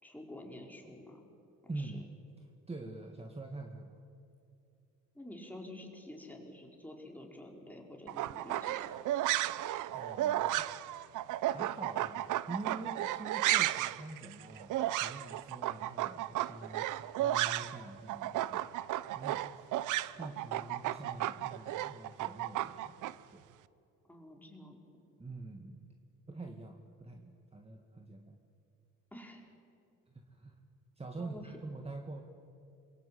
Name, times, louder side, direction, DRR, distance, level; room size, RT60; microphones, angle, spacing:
voice 1, 0.0-1.3 1.6-2.0 5.2-8.9 24.1-24.8 29.1-29.5 31.2-31.5, left 1 dB, 5° left, 1 dB, 5.0 m, -49 dB
voice 2, 1.7-2.1 2.7-4.0 9.9-10.7 11.4-18.7 19.2-19.7 20.2-23.4 25.2-25.8 26.3-28.3 30.1-30.6 31.0-32.2, right 2 dB, 20° right, 3 dB, 2.0 m, -45 dB
sound 1, 8.1-17.8 18.1-23.1, right 14 dB, 85° right, 0.8 m, -33 dB
26.5 x 23.5 x 8.6 m, 2.6 s
cardioid pair, 90°, 30 cm